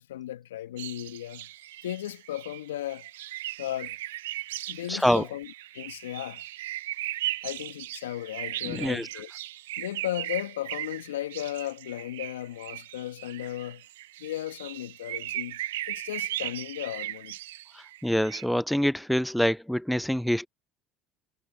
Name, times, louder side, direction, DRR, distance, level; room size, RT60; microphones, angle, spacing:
voice 1, 0.0-1.5 1.8-3.1 3.6-4.0 4.7-5.5 5.7-6.4 7.4-9.3 9.8-13.9 14.2-15.6 15.9-17.4, left 13 dB, 85° left, 2.4 m, -35 dB
sound 1, 0.8-18.4, right 15 dB, 80° right, 0.7 m, -37 dB
voice 2, 4.9-5.2 8.7-9.1 17.7-20.5, equal, ahead, 0.4 m, -26 dB
hypercardioid pair, 70°, 0 cm